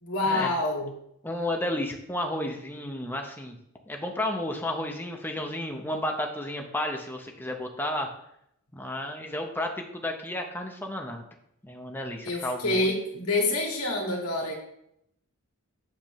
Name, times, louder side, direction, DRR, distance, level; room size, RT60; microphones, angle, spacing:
voice 1, 0.0-0.9 12.2-14.5, left 2 dB, 80° left, 0 dB, 1.9 m, -27 dB
voice 2, 1.2-3.6 3.9-8.1 8.7-11.2 11.6-12.9, left 1 dB, 10° left, 2 dB, 0.7 m, -32 dB
7.5 x 6.8 x 3.1 m, 0.74 s
head